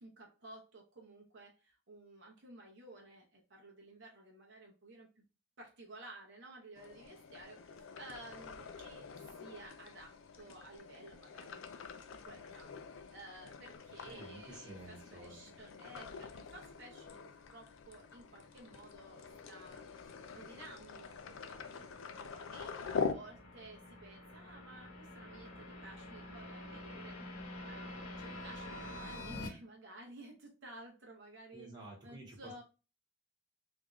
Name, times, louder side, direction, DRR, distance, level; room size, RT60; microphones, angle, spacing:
voice 1, 0.0-5.2 5.6-27.2 27.7-31.7 32.0-32.6, right 2 dB, 55° right, 0 dB, 0.7 m, -54 dB
sound 1, 6.8-23.1, left 5 dB, 65° left, 0.4 m, -45 dB
voice 2, 14.0-15.5 31.5-32.6, right 2 dB, 20° right, -2 dB, 1.0 m, -52 dB
sound 2, 18.0-29.5, left 1 dB, 85° left, 1.0 m, -49 dB
3.5 x 2.5 x 3.0 m, 0.32 s
head